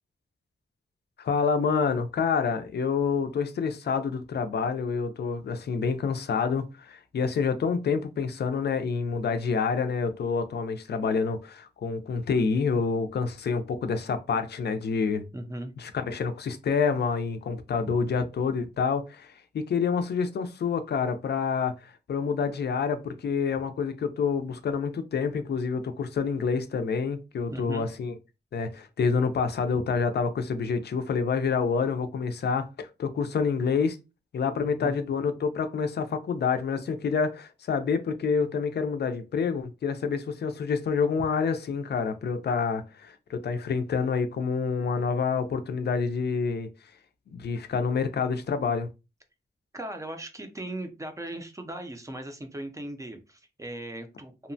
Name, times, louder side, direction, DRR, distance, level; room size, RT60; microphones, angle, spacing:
voice 1, 1.2-15.2 15.8-28.1 28.5-34.0 34.3-46.7 47.3-48.9, left 5 dB, 65° left, 0.4 m, -28 dB
voice 2, 15.3-15.7 27.5-27.9 29.7-29.8 34.8-35.0 49.7-54.5, right 1 dB, 15° right, 0.4 m, -38 dB
2.8 x 2.1 x 2.6 m
wide cardioid pair, 155°, 18 cm